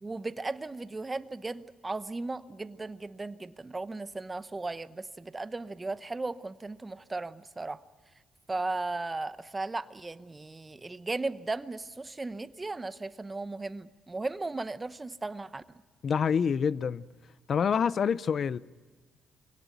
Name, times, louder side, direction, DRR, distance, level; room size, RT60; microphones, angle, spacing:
voice 1, 0.0-7.8 8.5-15.6, right 3 dB, 20° right, 0.9 m, -36 dB
voice 2, 16.0-17.0 17.5-18.6, left 7 dB, 55° left, 0.6 m, -26 dB
23.5 x 18.0 x 9.2 m
cardioid pair, 90°, 0 cm